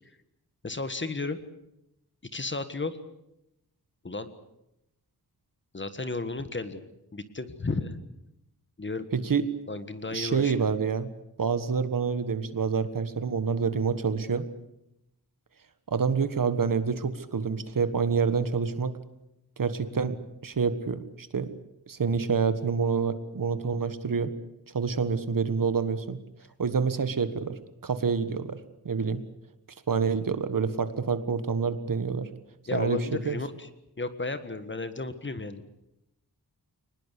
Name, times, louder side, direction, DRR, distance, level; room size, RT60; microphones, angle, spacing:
voice 1, 0.6-1.4 2.2-3.0 4.0-4.3 5.7-6.8 7.1-8.0 8.8-9.0 9.7-10.6 32.7-33.7 34.0-35.6, left 3 dB, 30° left, 11 dB, 1.6 m, -33 dB
voice 2, 9.1-9.5 10.1-11.1 11.4-14.5 15.9-18.9 19.6-20.2 20.4-21.5 21.9-24.3 24.7-26.2 26.6-28.6 28.8-29.2 29.9-32.3 32.7-33.0 33.2-33.4, right 5 dB, 55° right, 11 dB, 1.6 m, -27 dB
23.5 x 20.0 x 8.4 m, 0.85 s
wide cardioid pair, 135°, 39 cm